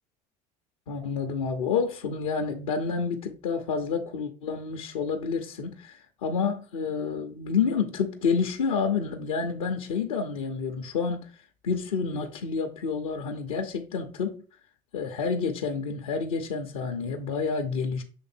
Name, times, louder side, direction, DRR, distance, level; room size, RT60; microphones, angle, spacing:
voice 1, 0.9-11.3 11.6-14.4 14.9-18.0, left 5 dB, 85° left, 0.8 m, -29 dB
6.9 x 3.3 x 4.4 m
hypercardioid pair, 80°, 17 cm